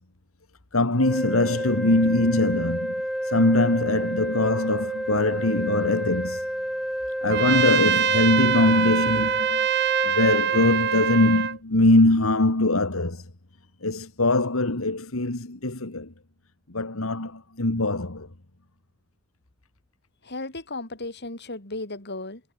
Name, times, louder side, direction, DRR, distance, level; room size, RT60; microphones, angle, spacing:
voice 1, 0.7-2.9 3.2-6.4 7.2-9.7 10.0-13.2 13.8-16.1 16.7-18.3, left 2 dB, 80° left, 2.1 m, -22 dB
sound 1, 1.0-10.6, equal, ahead, 3.0 m, -30 dB
Trumpet, 7.3-11.6, right 8 dB, 55° right, 1.4 m, -24 dB
voice 2, 20.2-22.4, left 2 dB, 55° left, 5.7 m, -35 dB
head